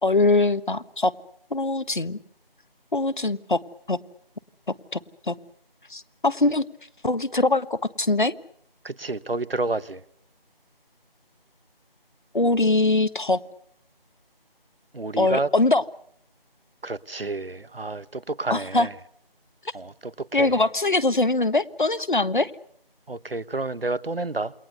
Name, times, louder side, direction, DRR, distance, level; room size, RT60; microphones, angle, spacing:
voice 1, 0.0-1.1 1.5-2.2 2.9-3.6 3.9-4.0 4.9-5.0 5.3-5.4 5.9-6.6 7.0-8.3 12.3-13.4 15.2-15.8 18.5-18.9 20.3-22.5, left 2 dB, 55° left, 1.4 m, -22 dB
voice 2, 8.8-10.0 14.9-15.5 16.8-18.9 19.7-20.5 23.1-24.5, right 3 dB, 75° right, 1.3 m, -30 dB
28.5 x 22.5 x 6.8 m
figure-of-eight pair, 175°, 29 cm